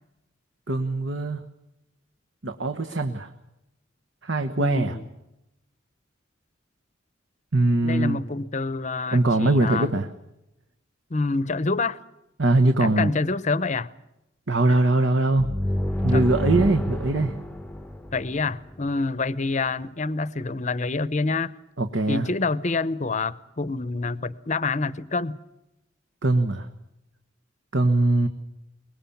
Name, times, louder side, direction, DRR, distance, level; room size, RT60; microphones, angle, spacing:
voice 1, 0.7-1.4 2.4-3.3 4.2-4.9 7.5-8.2 9.1-10.1 12.4-13.1 14.5-15.5 16.0-17.3 21.8-22.3 26.2-26.7 27.7-28.3, right 2 dB, 65° right, 6 dB, 1.3 m, -21 dB
voice 2, 4.6-5.1 7.8-9.9 11.1-12.0 12.8-13.9 16.1-16.3 18.1-21.5 22.1-25.4, left 3 dB, 35° left, 17 dB, 0.8 m, -27 dB
sound 1, 15.4-18.9, left 1 dB, 5° left, 0.8 m, -28 dB
24.0 x 21.0 x 7.2 m, 0.89 s
head